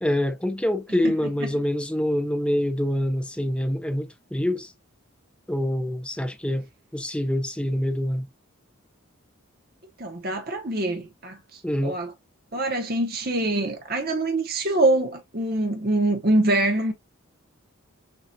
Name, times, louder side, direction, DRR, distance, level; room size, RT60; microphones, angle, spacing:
voice 1, 0.0-4.7 5.5-6.7 6.9-8.3 11.6-12.0, left 1 dB, 5° left, 0.6 m, -25 dB
voice 2, 10.0-12.1 12.5-16.9, right 2 dB, 45° right, 1.0 m, -24 dB
7.0 x 2.5 x 2.7 m
head